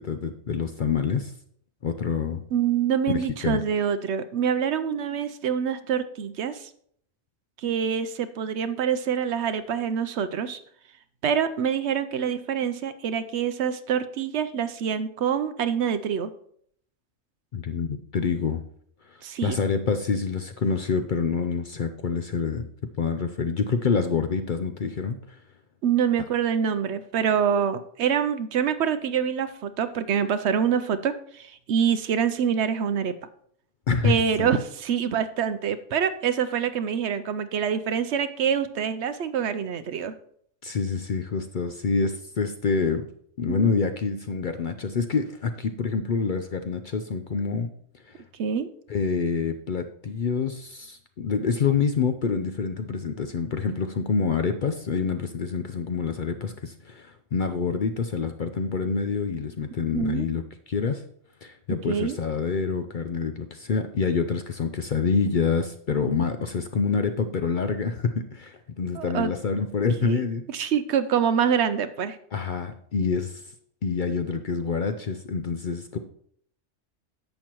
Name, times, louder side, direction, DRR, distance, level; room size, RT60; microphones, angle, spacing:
voice 1, 0.0-1.3 1.8-2.4 3.1-3.6 17.5-18.6 19.1-22.6 23.0-25.4 33.9-34.5 40.6-43.1 43.4-47.7 48.1-48.2 48.9-61.0 61.4-70.5 72.3-73.4 73.8-76.0, left 5 dB, 55° left, 8 dB, 0.6 m, -27 dB
voice 2, 2.5-6.7 7.6-10.6 11.2-16.3 19.2-19.6 25.8-33.1 34.0-40.1 43.5-43.7 48.4-48.7 59.9-60.3 61.9-62.2 68.9-69.3 70.0-72.2, right 8 dB, 70° right, 12 dB, 0.8 m, -26 dB
11.0 x 7.6 x 3.0 m, 0.64 s
omnidirectional pair, 1.3 m